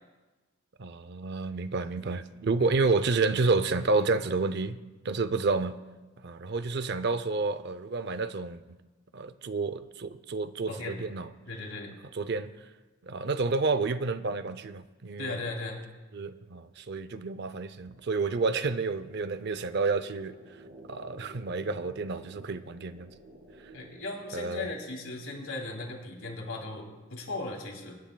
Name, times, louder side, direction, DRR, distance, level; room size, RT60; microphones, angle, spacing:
voice 1, 0.8-4.8 5.0-5.8 6.2-8.6 9.1-11.3 12.1-12.5 13.0-15.4 16.1-20.4 20.9-23.1 24.3-24.7, right 3 dB, 50° right, 0.5 m, -30 dB
voice 2, 10.7-11.0 11.5-12.0 15.2-15.8 23.7-27.9, left 2 dB, 85° left, 2.8 m, -37 dB
sound 1, 16.3-25.0, right 1 dB, 75° right, 2.1 m, -53 dB
24.5 x 10.5 x 2.3 m
head